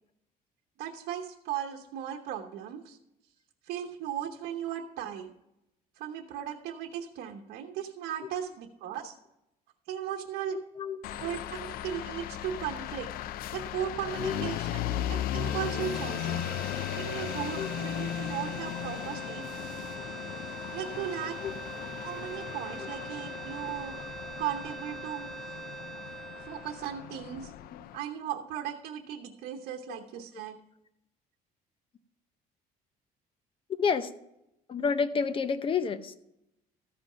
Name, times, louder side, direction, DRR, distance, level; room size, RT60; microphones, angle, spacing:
voice 1, 0.8-3.0 3.6-5.3 6.0-9.1 9.9-10.6 11.2-13.1 13.5-16.4 16.9-19.7 20.7-21.4 22.0-24.0 24.4-25.3 26.4-27.5 27.9-30.6, right 10 dB, 90° right, 3 dB, 1.0 m, -37 dB
voice 2, 10.5-11.0 14.2-14.3 17.6-17.7 21.4-21.5 29.9-30.0 33.8-34.1 34.7-36.2, left 6 dB, 35° left, 12 dB, 0.7 m, -29 dB
sound 1, 11.0-28.0, left 11 dB, 65° left, 0.4 m, -37 dB
sound 2, 15.3-27.5, right 4 dB, 5° left, 0.8 m, -43 dB
sound 3, 15.8-19.4, left 2 dB, 85° left, 2.9 m, -55 dB
13.5 x 5.2 x 5.6 m, 0.83 s
cardioid pair, 140°, 16 cm